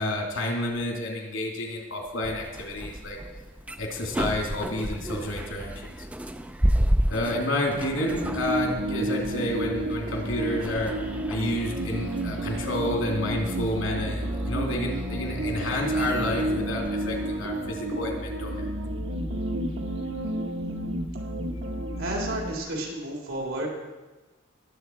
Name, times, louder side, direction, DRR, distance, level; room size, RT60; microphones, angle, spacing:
voice 1, 0.0-3.2 3.8-6.1 7.1-10.9 11.3-18.7, left 1 dB, 80° left, 0 dB, 3.0 m, -30 dB
sound 1, 2.2-17.7, equal, 5° right, 0.4 m, -32 dB
sound 2, 7.8-22.5, right 1 dB, 65° right, 1.3 m, -31 dB
voice 2, 22.0-23.7, right 1 dB, 85° right, -2 dB, 3.8 m, -31 dB
21.0 x 7.9 x 4.7 m, 1.2 s
head